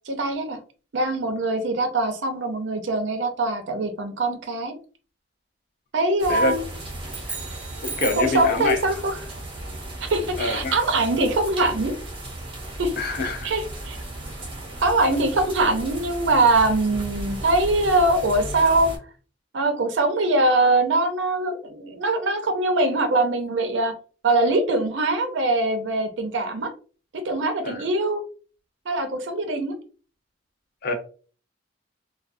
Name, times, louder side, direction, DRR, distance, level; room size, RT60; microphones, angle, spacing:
voice 1, 0.1-0.6 0.9-4.7 5.9-6.6 8.1-9.1 10.0-11.9 12.8-12.9 13.4-14.0 14.8-18.9 19.5-23.9 24.2-26.7 27.2-28.2 28.9-29.7, right 2 dB, 70° right, 0.5 m, -22 dB
sound 1, 6.2-19.0, right 1 dB, 30° right, 0.7 m, -36 dB
sound 2, 7.0-8.4, right 4 dB, 5° right, 0.3 m, -35 dB
voice 2, 7.8-8.8 10.4-10.8 13.0-13.5 27.6-27.8 30.8-30.9, left 2 dB, 50° left, 0.5 m, -25 dB
2.2 x 2.2 x 2.5 m
head